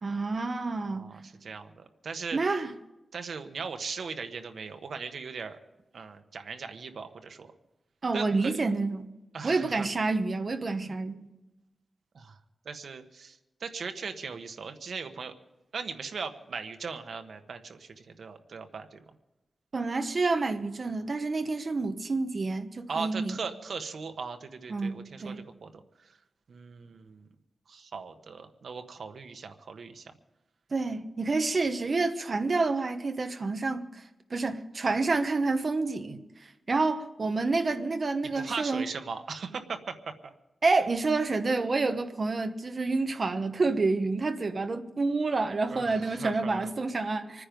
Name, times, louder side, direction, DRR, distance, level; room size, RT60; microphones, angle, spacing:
voice 1, 0.0-1.1 2.3-2.7 8.0-9.1 9.4-11.3 19.7-23.4 24.7-25.4 30.7-33.8 34.3-36.2 36.7-38.8 40.6-47.4, right 3 dB, 40° right, 1.0 m, -28 dB
voice 2, 0.8-2.5 3.1-5.6 5.9-7.5 8.1-8.6 9.3-9.9 12.1-12.4 12.6-15.3 15.7-19.0 22.9-26.2 26.5-27.3 27.7-30.1 38.2-40.3 45.7-46.7, right 5 dB, 85° right, 1.2 m, -39 dB
26.0 x 9.9 x 5.3 m
wide cardioid pair, 175°, 0 cm